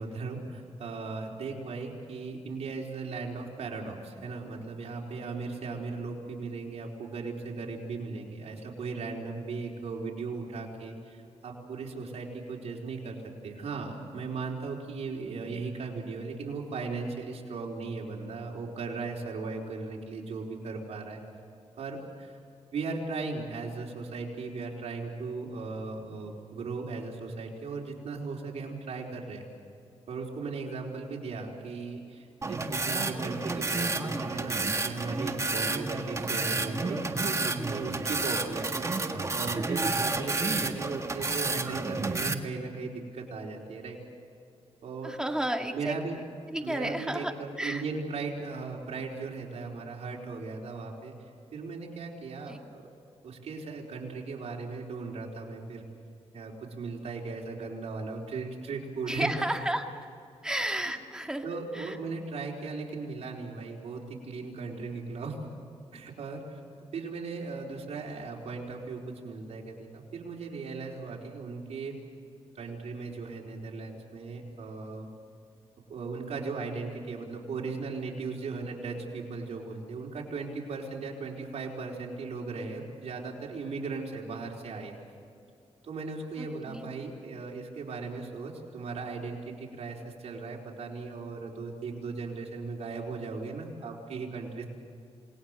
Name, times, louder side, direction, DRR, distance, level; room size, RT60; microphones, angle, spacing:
voice 1, 0.0-13.2 13.4-21.2 21.8-22.4 22.7-29.4 30.1-44.0 44.8-45.2 45.7-46.2 46.6-51.1 51.5-52.8 53.2-55.8 56.3-59.3 60.8-60.9 61.4-65.4 65.9-66.6 66.9-71.9 72.5-75.1 75.9-84.9 85.8-94.6, right 4 dB, 80° right, -1 dB, 4.4 m, -37 dB
sound 1, 32.4-42.3, right 3 dB, 30° right, 1.7 m, -30 dB
voice 2, 45.0-46.0 46.5-47.3 47.6-47.8 52.5-52.6 59.0-59.9 60.4-61.4 61.7-62.0 86.4-86.8, right 1 dB, 5° right, 3 dB, 2.2 m, -32 dB
28.5 x 20.0 x 6.6 m, 2.4 s
wide cardioid pair, 105°, 11 cm